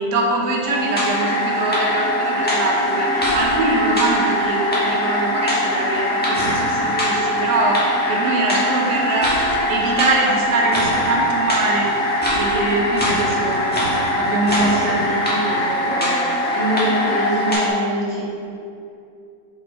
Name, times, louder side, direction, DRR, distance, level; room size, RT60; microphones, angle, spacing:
voice 1, 0.0-11.9 12.4-13.6 14.2-15.2, right 2 dB, 75° right, -1 dB, 1.4 m, -23 dB
sound 1, 0.6-17.7, equal, 5° left, 1.0 m, -22 dB
sound 2, 1.1-17.5, left 2 dB, 70° left, 1.3 m, -27 dB
voice 2, 14.6-18.3, equal, 50° right, -7 dB, 1.7 m, -25 dB
5.1 x 4.8 x 3.9 m, 2.6 s
omnidirectional pair, 1.9 m